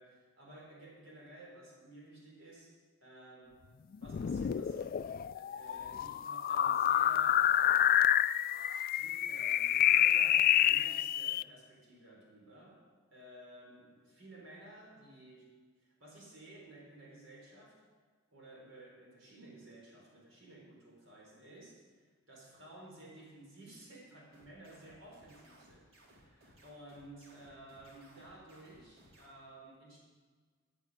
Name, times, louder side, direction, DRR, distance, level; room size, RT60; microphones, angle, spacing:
voice 1, 0.0-3.6 4.0-7.5 8.9-12.8 13.1-17.8 18.3-30.0, right 1 dB, 70° right, -3 dB, 5.5 m, -54 dB
sound 1, 4.0-11.4, left 11 dB, 45° left, 0.3 m, -28 dB
sound 2, 24.3-29.3, right 1 dB, 90° right, 4.0 m, -62 dB
10.0 x 10.0 x 9.6 m, 1.5 s
head